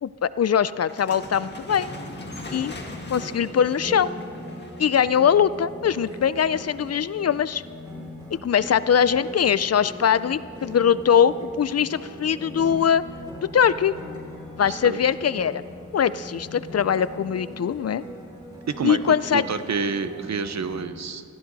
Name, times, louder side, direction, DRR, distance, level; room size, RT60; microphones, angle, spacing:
voice 1, 0.0-1.9 2.5-2.7 3.1-4.1 4.8-7.6 8.4-13.0 13.5-13.9 14.6-15.6 15.9-18.0 18.8-19.4, left 8 dB, 55° left, 16 dB, 0.4 m, -21 dB
sound 1, 0.8-5.0, left 2 dB, 35° left, 1.7 m, -40 dB
sound 2, 1.9-20.8, left 1 dB, 15° right, 4.2 m, -40 dB
voice 2, 14.7-15.0 18.7-21.2, right 5 dB, 60° right, 11 dB, 0.8 m, -28 dB
20.5 x 14.5 x 4.0 m, 2.4 s
wide cardioid pair, 145°, 31 cm